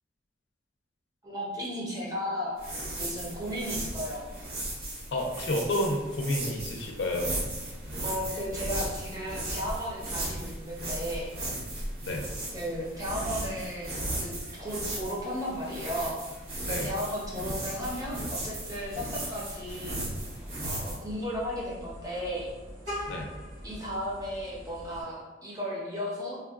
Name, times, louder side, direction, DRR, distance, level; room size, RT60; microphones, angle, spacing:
voice 1, 1.2-2.6 3.0-4.3 8.0-11.3 12.5-16.2 16.6-20.0 20.6-22.5 23.6-26.4, equal, 20° right, -5 dB, 0.6 m, -35 dB
sound 1, 2.6-21.0, right 1 dB, 50° right, 0.8 m, -36 dB
voice 2, 5.1-7.4 12.1-12.2 16.7-16.9 23.1-23.3, left 1 dB, 75° left, 1 dB, 0.5 m, -30 dB
Vehicle horn car horn honking, 19.9-25.0, equal, 70° right, 1.2 m, -42 dB
3.3 x 2.2 x 2.4 m, 1.2 s
head